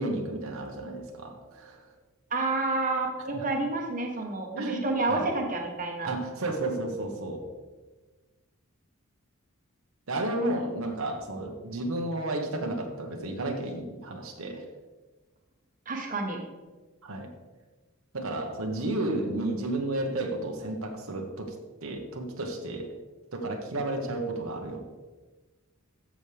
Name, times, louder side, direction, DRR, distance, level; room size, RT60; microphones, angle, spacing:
voice 1, 0.0-1.9 3.3-3.4 4.6-5.3 6.1-7.5 10.1-14.6 17.0-17.3 18.1-21.5 21.8-22.9 23.3-24.8, right 2 dB, 80° right, 2 dB, 1.2 m, -32 dB
voice 2, 2.3-6.1 15.9-16.4, right 2 dB, 40° right, 1 dB, 1.2 m, -29 dB
14.0 x 6.3 x 3.4 m, 1.3 s
head